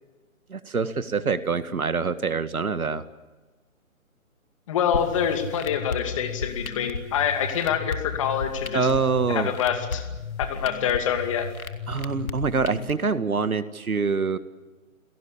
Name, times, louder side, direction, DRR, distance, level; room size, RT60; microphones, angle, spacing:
voice 1, 0.5-3.0 8.7-9.5 11.9-14.4, right 4 dB, 90° right, 12 dB, 1.9 m, -25 dB
voice 2, 4.7-8.9 9.3-10.0 10.4-11.5, left 8 dB, 25° left, 7 dB, 2.4 m, -26 dB
sound 1, 4.9-12.9, left 4 dB, 80° left, 3.0 m, -34 dB
29.0 x 18.0 x 8.6 m, 1.3 s
hypercardioid pair, 165°, 42 cm